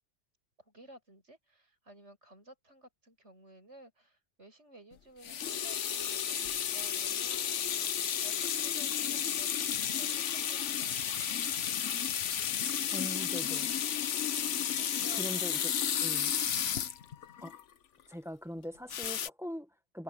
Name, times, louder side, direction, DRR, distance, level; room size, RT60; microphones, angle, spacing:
voice 1, 0.6-11.3 14.8-15.5, right 1 dB, 75° right, 7.3 m, -55 dB
sound 1, 5.2-17.6 18.9-19.3, left 9 dB, 85° left, 1.2 m, -32 dB
voice 2, 12.9-13.7 15.1-15.7 16.0-16.3 17.4-17.6 18.1-20.0, equal, ahead, 1.6 m, -41 dB
Wind instrument woodwind instrument, 13.3-17.7, left 14 dB, 70° left, 3.4 m, -60 dB
omnidirectional pair, 1.2 m